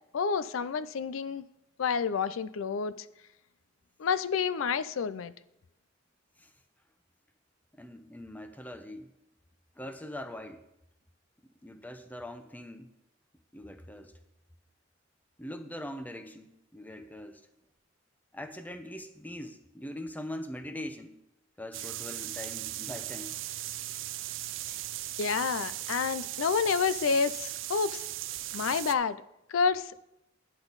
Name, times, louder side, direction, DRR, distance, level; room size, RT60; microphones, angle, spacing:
voice 1, 0.1-1.4 1.8-2.9 4.0-5.3 25.2-28.0 28.5-29.2 29.5-30.1, left 5 dB, 85° left, 15 dB, 0.4 m, -29 dB
voice 2, 7.7-9.1 9.8-10.6 11.6-12.9 13.5-14.1 15.4-17.4 18.3-21.1 21.6-23.3, left 1 dB, 10° left, 8 dB, 0.7 m, -42 dB
sound 1, 21.7-28.9, right 14 dB, 70° right, 0.4 m, -38 dB
9.8 x 8.8 x 4.0 m, 0.85 s
head